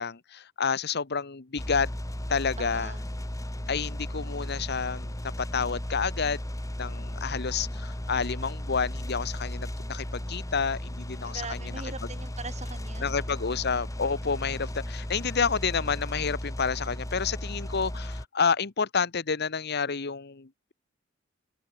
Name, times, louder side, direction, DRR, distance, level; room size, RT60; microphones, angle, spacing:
voice 1, 0.0-1.9 2.3-2.9 3.7-6.4 6.8-11.4 13.0-20.7, left 5 dB, 55° left, 1.1 m, -29 dB
sound 1, 1.6-18.2, equal, 15° left, 1.8 m, -35 dB
voice 2, 2.6-3.1 11.2-13.6, right 4 dB, 35° right, 6.2 m, -41 dB
head